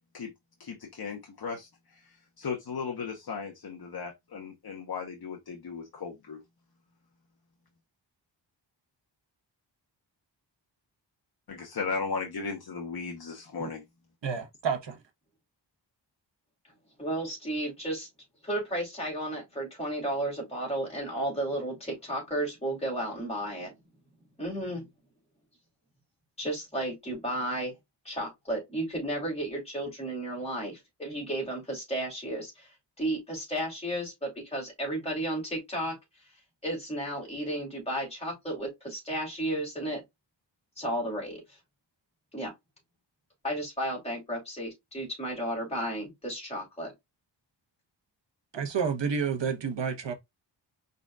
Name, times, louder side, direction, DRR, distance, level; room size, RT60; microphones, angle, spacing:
voice 1, 0.6-6.4 11.5-13.8, left 5 dB, 55° left, 1.2 m, -36 dB
voice 2, 14.2-15.0 48.5-50.1, right 6 dB, 70° right, 1.2 m, -30 dB
voice 3, 17.0-18.1 18.4-23.7 24.4-24.8 26.4-27.7 28.0-36.0 36.6-40.0 40.8-41.6 42.3-42.5 43.4-46.9, right 1 dB, 15° left, 3.2 m, -33 dB
5.1 x 4.0 x 2.4 m
wide cardioid pair, 105°, 44 cm